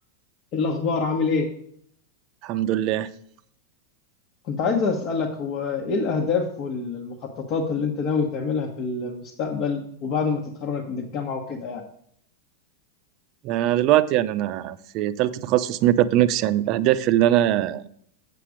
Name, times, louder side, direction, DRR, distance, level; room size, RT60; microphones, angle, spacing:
voice 1, 0.5-1.5 4.4-11.8, left 4 dB, 40° left, -1 dB, 1.1 m, -26 dB
voice 2, 2.4-3.1 13.4-17.9, right 13 dB, 40° right, 13 dB, 0.5 m, -21 dB
8.3 x 5.8 x 5.0 m, 0.66 s
supercardioid pair, 140°, 0 cm